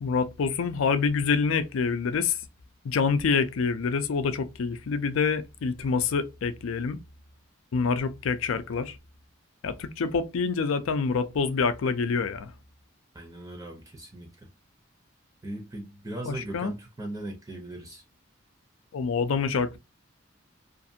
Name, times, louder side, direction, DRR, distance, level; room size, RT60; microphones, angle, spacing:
voice 1, 0.0-2.4 2.8-7.0 7.7-9.0 9.6-12.5 16.3-16.7 18.9-19.8, left 5 dB, 85° left, 0.4 m, -26 dB
voice 2, 13.1-14.3 15.4-18.0, right 1 dB, 15° right, 0.5 m, -38 dB
2.5 x 2.4 x 2.6 m
head